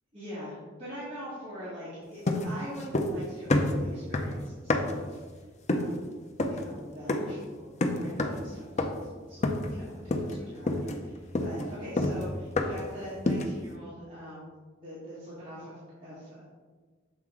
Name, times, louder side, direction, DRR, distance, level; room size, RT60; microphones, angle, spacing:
voice 1, 0.1-5.2 5.7-6.0 6.5-14.5 14.8-16.4, equal, 30° right, -11 dB, 1.7 m, -43 dB
sound 1, 2.3-3.2 3.5-5.1 5.7-6.0 6.4-6.7 7.1-7.4 7.8-8.5 8.8-9.1 9.4-9.8 10.1-10.4 10.7-12.9 13.3-13.6, left 1 dB, 35° left, 0.5 m, -28 dB
7.2 x 4.2 x 3.7 m, 1.4 s
head